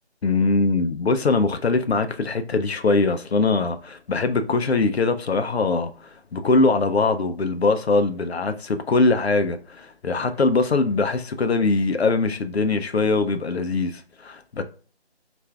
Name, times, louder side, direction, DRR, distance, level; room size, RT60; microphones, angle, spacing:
voice 1, 0.2-14.6, left 3 dB, 70° left, 0.5 m, -22 dB
6.5 x 2.5 x 2.3 m
figure-of-eight pair, 175°, 34 cm